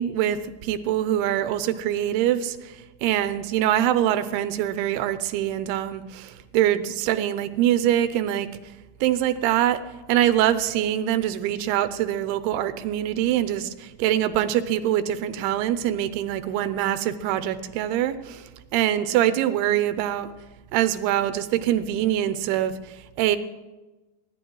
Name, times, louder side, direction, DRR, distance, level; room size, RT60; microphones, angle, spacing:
voice 1, 0.0-2.7 3.0-8.5 9.0-9.8 10.1-18.4 18.7-20.3 20.7-22.8 23.2-23.4, right 12 dB, 90° right, 12 dB, 2.7 m, -24 dB
25.5 x 11.0 x 3.1 m, 1.1 s
omnidirectional pair, 4.6 m